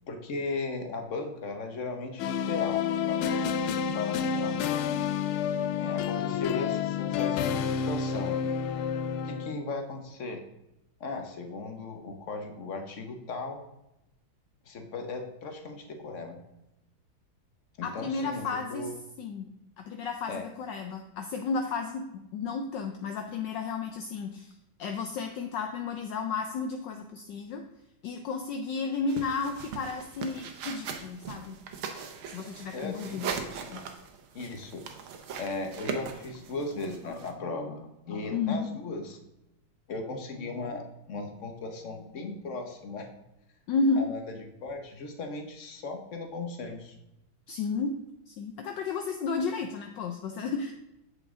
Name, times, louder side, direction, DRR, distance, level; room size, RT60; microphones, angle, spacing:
voice 1, 0.1-3.4 3.9-4.6 5.8-8.3 9.2-10.4 11.0-13.6 14.7-16.4 17.8-18.9 20.3-20.4 32.4-33.5 34.3-34.9 35.4-39.2 39.9-43.1 44.0-46.9, left 3 dB, 50° left, 5 dB, 1.0 m, -37 dB
sound 1, 2.2-9.6, left 7 dB, 90° left, 1.5 m, -29 dB
voice 2, 17.8-18.9 19.2-19.5 19.8-27.6 28.0-31.6 32.3-33.9 38.3-38.7 43.7-44.1 47.5-48.0 48.3-50.7, left 4 dB, 70° left, 5 dB, 1.2 m, -32 dB
sound 2, 29.1-37.3, right 6 dB, 80° right, 1.7 m, -40 dB
8.4 x 6.5 x 3.7 m, 0.89 s
omnidirectional pair, 2.3 m